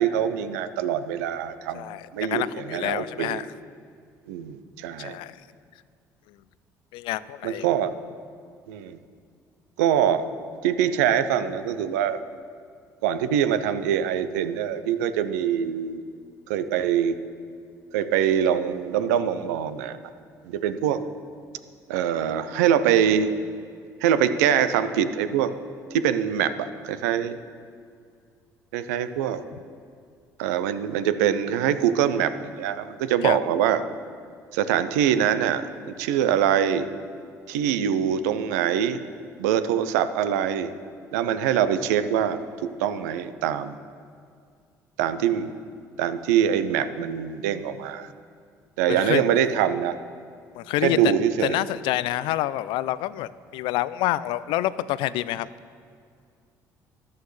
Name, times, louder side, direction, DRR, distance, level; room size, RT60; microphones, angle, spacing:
voice 1, 0.0-3.4 4.3-5.2 7.4-7.9 8.7-9.0 9.8-10.2 10.6-12.2 13.0-16.0 16.5-17.2 17.9-20.0 20.4-21.0 21.9-23.3 24.0-25.5 25.9-27.4 28.7-29.4 30.4-33.8 34.5-36.9 37.5-39.0 39.4-40.7 41.1-43.8 45.0-45.5 46.0-48.1 48.8-50.0 50.8-51.6, right 9 dB, 85° right, 12 dB, 0.5 m, -24 dB
voice 2, 1.7-3.5 5.0-5.4 6.9-7.7 33.2-33.4 48.9-49.2 50.5-51.0 51.4-55.5, left 15 dB, 70° left, 17 dB, 0.4 m, -27 dB
13.0 x 11.0 x 3.2 m, 2.2 s
hypercardioid pair, 60°, 9 cm